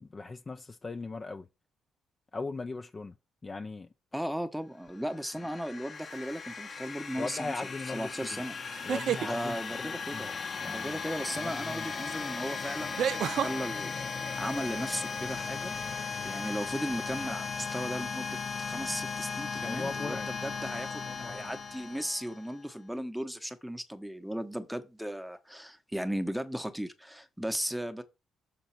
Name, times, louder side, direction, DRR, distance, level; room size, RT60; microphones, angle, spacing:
voice 1, 0.0-1.5 2.3-3.1 3.4-3.9 7.2-8.4 8.8-10.3 10.6-11.0 11.4-11.9 18.7-18.9 19.6-20.3 21.1-21.5, left 3 dB, 30° left, 0.6 m, -39 dB
voice 2, 4.1-7.5 7.9-8.6 9.2-10.3 10.7-13.9 14.4-15.8 16.2-28.0, equal, ahead, 1.0 m, -36 dB
sound 1, 5.0-22.6, left 5 dB, 50° left, 1.0 m, -37 dB
sound 2, 6.1-6.5 8.7-9.3 11.6-11.7 13.0-13.5, right 9 dB, 70° right, 0.3 m, -30 dB
6.8 x 4.0 x 5.7 m
cardioid pair, 90°, 0 cm